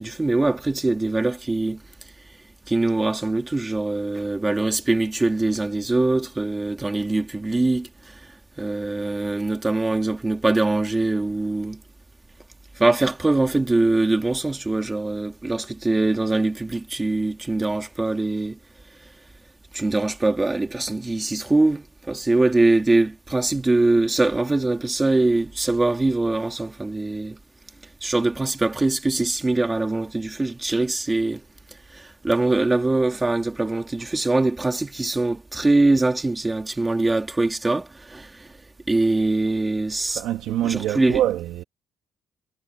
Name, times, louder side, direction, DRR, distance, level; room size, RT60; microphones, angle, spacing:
voice 1, 0.0-1.8 2.7-8.2 8.6-11.8 12.8-18.6 19.7-27.4 28.0-31.4 31.9-38.5 38.9-40.2 40.6-41.2, right 2 dB, 15° right, 2.5 m, -22 dB
voice 2, 40.1-41.6, right 13 dB, 85° right, 2.3 m, -25 dB
cardioid pair, 135°, 0 cm